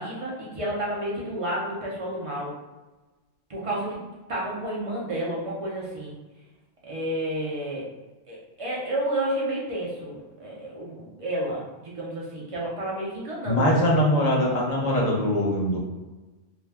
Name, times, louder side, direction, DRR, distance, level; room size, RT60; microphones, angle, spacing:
voice 1, 0.0-2.5 3.5-4.0 4.3-6.1 6.8-7.8 8.3-13.9, right 1 dB, 35° right, -5 dB, 0.6 m, -31 dB
voice 2, 13.5-15.8, equal, 45° left, -3 dB, 0.5 m, -22 dB
2.5 x 2.2 x 3.3 m, 1.2 s
omnidirectional pair, 1.3 m